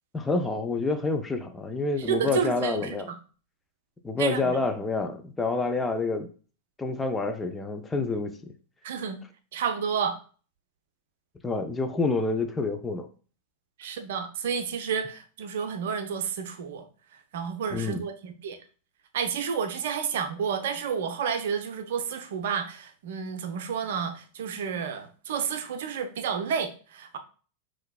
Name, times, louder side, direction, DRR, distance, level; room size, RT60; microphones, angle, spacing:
voice 1, 0.1-3.1 4.0-6.3 6.8-8.5 11.4-13.1 17.7-18.1, left 3 dB, 15° left, 6 dB, 0.5 m, -28 dB
voice 2, 2.1-3.1 4.2-4.6 8.8-9.2 9.5-10.2 13.8-16.9 17.3-18.6 19.1-27.2, right 7 dB, 55° right, 6 dB, 0.5 m, -30 dB
5.7 x 3.1 x 2.3 m, 0.39 s
figure-of-eight pair, 90°, 0 cm